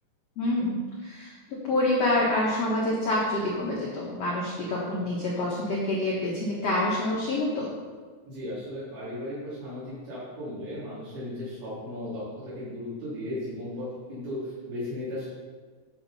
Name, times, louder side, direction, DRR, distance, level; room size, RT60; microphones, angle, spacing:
voice 1, 0.4-7.7, left 1 dB, 80° left, -5 dB, 1.4 m, -27 dB
voice 2, 8.3-12.2 12.6-15.3, left 1 dB, 85° right, -11 dB, 5.3 m, -36 dB
9.6 x 7.1 x 4.1 m, 1.5 s
omnidirectional pair, 5.0 m